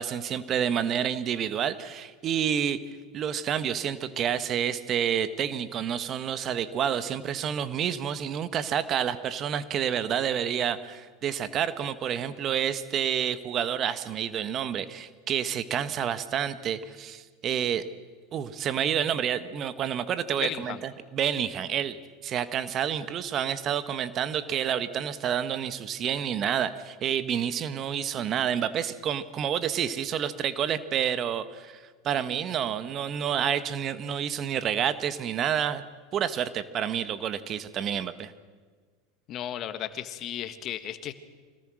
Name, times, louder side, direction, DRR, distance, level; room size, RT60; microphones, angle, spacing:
voice 1, 0.0-2.8 3.1-17.8 18.3-20.8 21.1-22.0 22.2-35.8 36.1-38.3, right 9 dB, 40° right, 12 dB, 1.4 m, -29 dB
voice 2, 20.4-20.8 39.3-41.1, left 11 dB, 45° left, 10 dB, 1.6 m, -34 dB
25.5 x 19.0 x 6.4 m, 1.5 s
hypercardioid pair, 95°, 0 cm